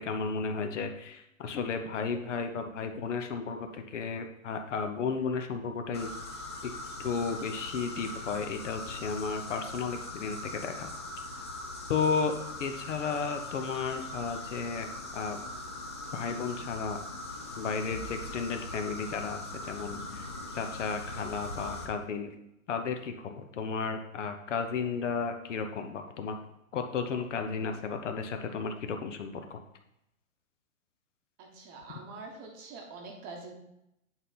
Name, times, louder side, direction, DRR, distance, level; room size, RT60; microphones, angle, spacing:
voice 1, 0.0-6.1 6.6-6.7 7.0-10.9 11.9-12.3 12.6-15.4 16.1-17.0 17.6-19.4 19.6-20.3 20.5-22.3 22.7-26.4 26.7-29.6, left 5 dB, 60° left, 6 dB, 1.0 m, -33 dB
sound 1, 5.9-21.9, left 2 dB, 20° left, 0.4 m, -41 dB
voice 2, 31.4-33.5, right 3 dB, 20° right, 1 dB, 1.0 m, -45 dB
9.1 x 4.1 x 4.0 m, 0.83 s
hypercardioid pair, 145°, 42 cm